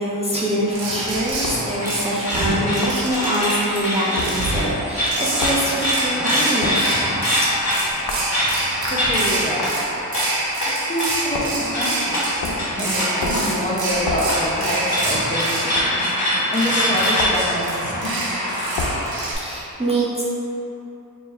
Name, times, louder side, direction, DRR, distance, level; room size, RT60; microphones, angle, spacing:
voice 1, 0.0-7.2 19.3-20.2, right 1 dB, 15° right, -8 dB, 0.6 m, -24 dB
sound 1, 0.7-19.3, right 2 dB, 80° right, 0.7 m, -27 dB
sound 2, 1.0-19.2, left 1 dB, 50° left, 1.1 m, -25 dB
sound 3, 1.4-1.7 2.8-3.0 4.2-4.3 5.4-5.6 6.6-6.8 8.1-8.3 9.6-9.8 11.3-11.6 12.4-12.7 13.2-13.5 14.1-14.3 15.8-15.9 17.2-17.5 18.8-19.0, left 3 dB, 80° left, 0.5 m, -28 dB
voice 2, 8.9-9.8 10.8-12.2 12.7-16.1 16.5-18.4, equal, 20° left, -6 dB, 0.8 m, -26 dB
3.0 x 2.4 x 4.3 m, 2.9 s
cardioid pair, 50°, 36 cm